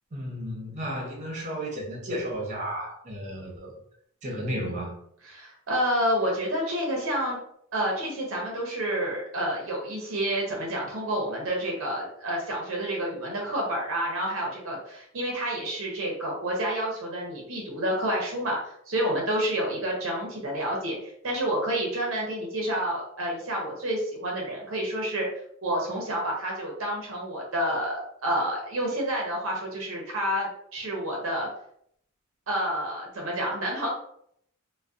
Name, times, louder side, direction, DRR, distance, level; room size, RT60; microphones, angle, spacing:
voice 1, 0.1-3.7 4.2-4.9, equal, 35° right, -2 dB, 0.8 m, -33 dB
voice 2, 5.3-7.4 7.7-25.3 25.6-31.5 32.5-33.9, right 1 dB, 70° right, -2 dB, 0.6 m, -29 dB
2.3 x 2.1 x 2.5 m, 0.69 s
head